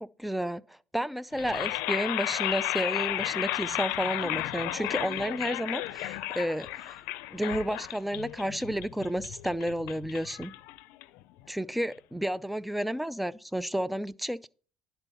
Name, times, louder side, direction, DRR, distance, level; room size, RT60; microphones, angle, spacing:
voice 1, 0.2-7.0 7.3-10.5 11.5-14.5, equal, ahead, 0.4 m, -31 dB
sound 1, 1.3-11.4, left 17 dB, 90° left, 0.5 m, -33 dB
10.5 x 4.5 x 5.4 m
cardioid pair, 120°, 3 cm